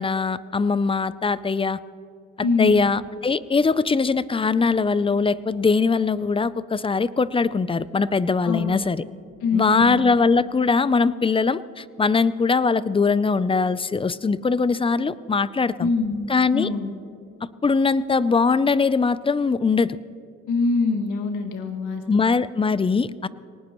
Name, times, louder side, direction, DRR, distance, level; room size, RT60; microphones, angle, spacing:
voice 1, 0.0-1.8 2.6-9.0 9.5-15.9 16.3-16.7 17.6-20.0 22.1-23.3, left 4 dB, 20° left, 17 dB, 0.5 m, -21 dB
voice 2, 2.4-2.9 8.4-8.8 9.4-10.0 15.8-16.3 16.5-16.9 20.5-22.3, left 4 dB, 85° left, 4 dB, 1.9 m, -24 dB
23.0 x 19.0 x 3.1 m, 2.6 s
cardioid pair, 90°, 30 cm